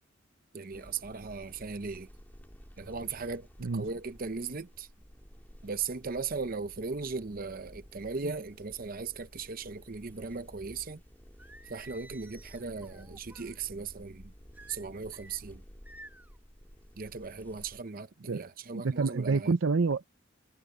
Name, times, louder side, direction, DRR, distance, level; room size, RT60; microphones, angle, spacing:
voice 1, 0.5-2.1 2.8-3.5 3.7-4.9 5.6-11.0 11.7-14.3 14.7-15.6 17.0-19.6, right 4 dB, 45° right, 0.8 m, -38 dB
sound 1, 0.7-17.8, equal, 10° left, 3.3 m, -53 dB
Singing, 11.4-13.6 14.5-15.4 15.8-16.4, right 1 dB, 10° right, 1.5 m, -53 dB
voice 2, 18.7-20.0, right 4 dB, 80° right, 0.6 m, -28 dB
head